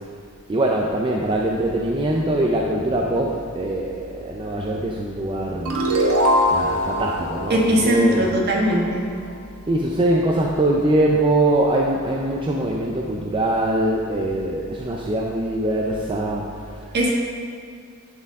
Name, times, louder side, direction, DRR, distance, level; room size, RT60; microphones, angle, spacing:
voice 1, 0.5-5.9 6.5-8.3 9.7-16.9, right 1 dB, 25° right, -1 dB, 0.4 m, -22 dB
sound 1, 5.7-8.9, equal, 75° right, 1.0 m, -22 dB
voice 2, 7.5-9.1 16.9-17.1, equal, 50° right, -2 dB, 1.3 m, -19 dB
10.5 x 4.5 x 3.6 m, 2.2 s
head